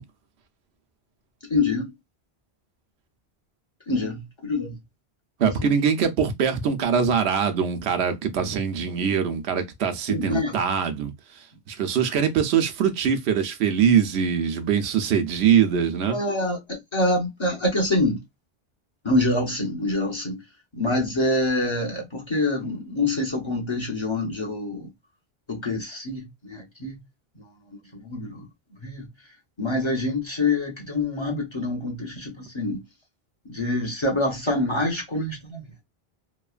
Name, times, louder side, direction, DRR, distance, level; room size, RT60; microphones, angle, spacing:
voice 1, 1.5-1.9 3.9-4.8 5.5-5.7 10.1-10.6 16.1-18.2 19.0-20.4 20.7-24.9 25.5-26.9 27.9-28.5 28.8-29.1 29.6-32.8 33.5-35.6, left 2 dB, 30° left, 0.8 m, -26 dB
voice 2, 5.4-11.1 11.7-16.2, right 7 dB, 85° right, 0.9 m, -22 dB
3.0 x 2.0 x 2.4 m
omnidirectional pair, 1.0 m